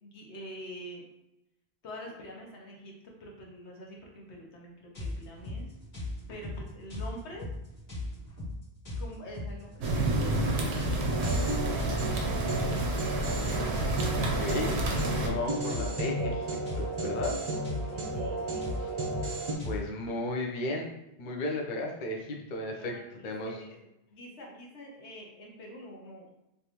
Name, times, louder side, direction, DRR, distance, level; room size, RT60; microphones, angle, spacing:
voice 1, 0.0-1.1 1.8-5.7 6.3-7.5 9.0-12.9 17.9-18.7 22.8-23.8 24.1-26.3, equal, 90° left, -1 dB, 1.1 m, -46 dB
sound 1, 4.9-19.8, left 2 dB, 75° left, 1.7 m, -38 dB
sound 2, 9.8-15.3, right 2 dB, 90° right, 0.9 m, -30 dB
sound 3, 11.1-19.6, right 1 dB, 40° right, 0.5 m, -34 dB
voice 2, 14.1-17.4 18.8-18.9 19.6-20.9 21.2-23.0 23.2-23.6, left 1 dB, 55° left, 0 dB, 0.7 m, -34 dB
3.4 x 2.6 x 2.8 m, 0.88 s
omnidirectional pair, 1.1 m